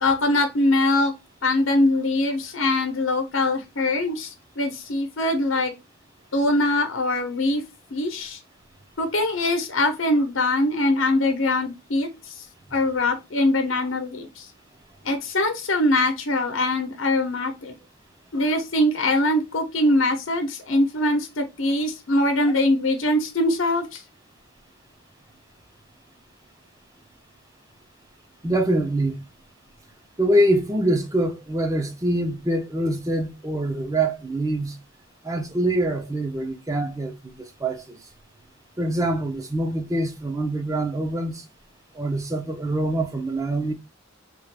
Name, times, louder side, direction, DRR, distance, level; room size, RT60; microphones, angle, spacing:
voice 1, 0.0-1.1 1.4-5.7 6.3-7.6 7.9-8.4 9.0-12.3 12.7-14.4 15.0-17.7 18.3-24.0, left 1 dB, 85° left, 0.8 m, -22 dB
voice 2, 28.4-29.2 30.2-34.8 35.2-38.0 38.8-41.4 41.9-43.7, right 1 dB, 15° right, 0.6 m, -24 dB
3.6 x 2.4 x 3.3 m
head